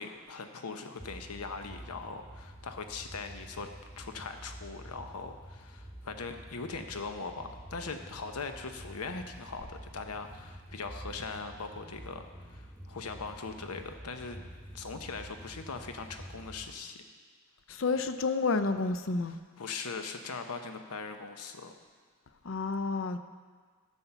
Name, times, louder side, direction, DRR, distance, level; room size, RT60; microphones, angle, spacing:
voice 1, 0.0-3.7 4.0-14.4 14.7-17.0 19.3-21.7, left 4 dB, 90° left, 6 dB, 0.9 m, -40 dB
sound 1, 1.0-16.7, equal, 10° left, 1.1 m, -48 dB
voice 2, 17.7-19.4 22.4-23.2, left 3 dB, 60° left, 10 dB, 0.5 m, -30 dB
11.0 x 7.1 x 5.8 m, 1.5 s
head